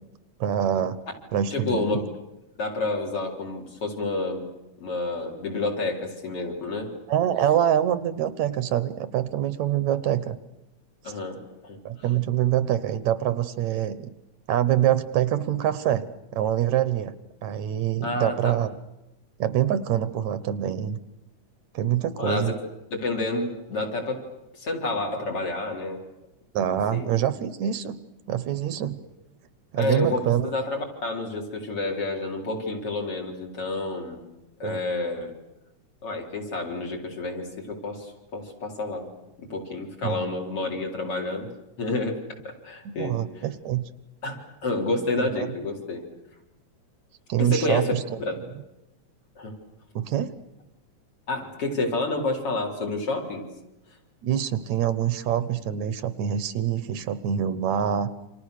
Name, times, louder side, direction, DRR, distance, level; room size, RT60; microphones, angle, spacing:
voice 1, 0.4-1.0 1.3-2.1 7.1-10.4 11.9-14.1 14.5-16.0 16.3-17.1 17.4-18.7 19.4-21.0 21.7-22.5 26.5-28.0 28.3-29.0 29.7-30.5 34.6-34.8 40.0-40.3 43.0-43.9 45.2-45.5 47.3-48.2 50.0-50.3 54.2-58.1, right 10 dB, 75° right, 15 dB, 2.3 m, -25 dB
voice 2, 1.5-2.0 2.6-4.5 4.8-6.9 11.0-11.8 18.0-18.6 22.2-22.5 22.9-24.2 24.5-26.0 26.7-27.1 29.8-34.2 34.6-35.3 36.0-39.1 39.4-41.5 41.8-43.5 44.2-46.0 47.4-47.9 48.3-48.4 49.4-49.5 51.3-53.5, left 2 dB, 50° left, 1 dB, 5.0 m, -29 dB
29.0 x 26.5 x 6.6 m, 0.92 s
omnidirectional pair, 3.4 m